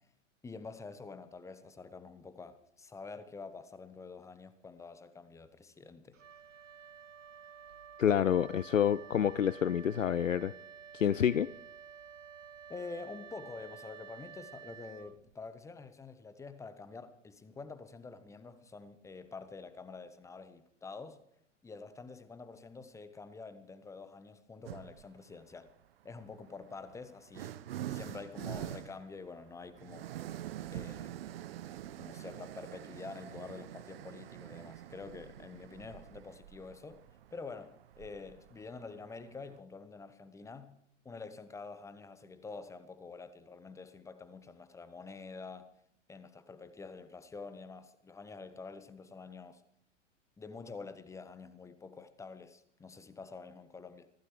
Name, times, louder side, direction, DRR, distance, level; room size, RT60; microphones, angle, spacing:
voice 1, 0.4-6.2 12.7-21.2 21.6-25.7 26.0-27.6 27.9-30.1 30.7-31.2 31.9-37.0 37.3-40.8 41.0-45.7 46.1-49.6 50.4-54.1, left 4 dB, 10° left, 1.1 m, -47 dB
Wind instrument woodwind instrument, 6.1-15.6, right 7 dB, 85° right, 0.6 m, -51 dB
voice 2, 8.0-10.5 10.9-11.5, left 9 dB, 85° left, 0.5 m, -28 dB
sound 1, 24.6-25.1 26.1-39.6, right 12 dB, 50° right, 0.9 m, -45 dB
25.0 x 15.5 x 3.2 m
figure-of-eight pair, 100°, 37 cm